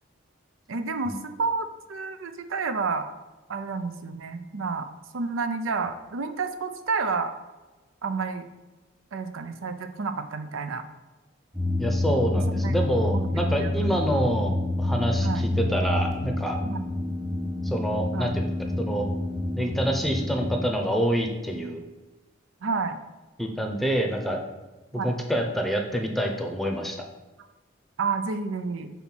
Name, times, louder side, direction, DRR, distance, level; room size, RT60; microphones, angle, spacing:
voice 1, 0.7-3.1 3.5-4.9 5.1-7.3 8.0-8.4 9.1-10.8 12.5-12.8 13.1-13.9 15.2-15.5 16.6-16.8 18.1-18.3 22.6-23.0 24.9-25.1 28.0-28.9, right 4 dB, 85° right, 9 dB, 0.6 m, -30 dB
sound 1, 11.5-20.7, left 1 dB, 20° right, 1.2 m, -28 dB
voice 2, 11.8-16.6 17.6-19.1 19.6-21.8 23.4-24.4 25.0-27.0, equal, ahead, 3 dB, 0.7 m, -27 dB
5.7 x 4.1 x 6.1 m, 1.2 s
head